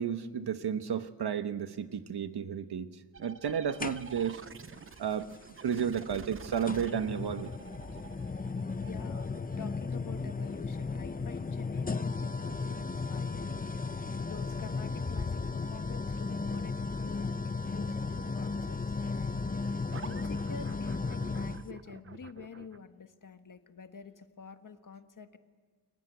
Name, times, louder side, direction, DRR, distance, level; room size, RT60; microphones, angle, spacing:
voice 1, 0.0-2.9 3.2-4.4 5.0-5.3 5.6-7.5, right 7 dB, 65° right, 10 dB, 1.2 m, -32 dB
sound 1, 3.1-12.6 19.9-22.8, right 5 dB, 30° right, 0.7 m, -50 dB
sound 2, 3.8-4.4 5.8-5.9 6.6-21.7, left 4 dB, 20° left, 0.7 m, -35 dB
voice 2, 8.8-13.7 14.2-18.0 18.3-19.7 20.0-25.4, left 6 dB, 50° left, 8 dB, 1.5 m, -48 dB
30.0 x 22.5 x 8.1 m, 1.5 s
wide cardioid pair, 130°, 42 cm